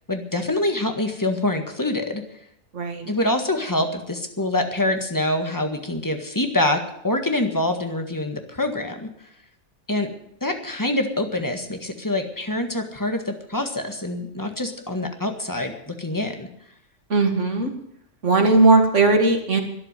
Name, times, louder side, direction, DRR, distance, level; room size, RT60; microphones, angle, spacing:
voice 1, 0.1-2.2 3.1-9.1 9.9-10.1 10.4-16.5, left 1 dB, 15° left, 5 dB, 1.7 m, -25 dB
voice 2, 2.7-3.1 17.1-17.7 18.2-19.6, right 3 dB, 80° right, 4 dB, 2.4 m, -18 dB
12.5 x 10.5 x 9.3 m, 0.76 s
omnidirectional pair, 1.2 m